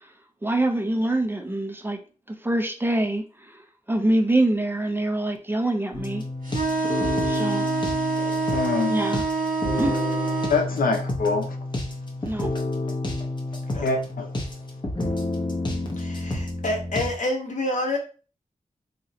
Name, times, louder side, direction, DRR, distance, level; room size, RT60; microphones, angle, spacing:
voice 1, 0.4-2.0 2.3-3.6 3.9-6.2 7.3-7.7 8.9-9.2 9.8-10.0 12.2-12.5, right 1 dB, 15° right, 0.5 m, -25 dB
sound 1, 5.9-17.1, left 2 dB, 35° left, 0.8 m, -30 dB
sound 2, 6.4-10.6, right 4 dB, 75° right, 1.3 m, -26 dB
voice 2, 8.2-8.9 10.5-11.6 13.8-14.3, left 4 dB, 85° left, 0.5 m, -25 dB
voice 3, 13.7-14.0 16.0-18.0, left 1 dB, 60° left, 1.1 m, -28 dB
2.8 x 2.4 x 4.1 m
wide cardioid pair, 120°, 14 cm